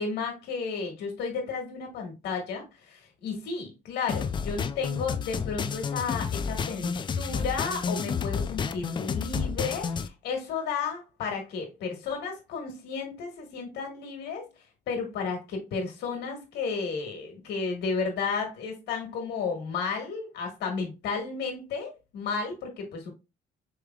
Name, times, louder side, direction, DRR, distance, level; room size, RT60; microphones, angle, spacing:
voice 1, 0.0-14.5 14.9-23.1, left 5 dB, 80° left, 1.6 m, -33 dB
sound 1, 4.1-10.1, left 6 dB, 30° left, 0.4 m, -30 dB
4.9 x 3.3 x 2.3 m
cardioid pair, 110°, 17 cm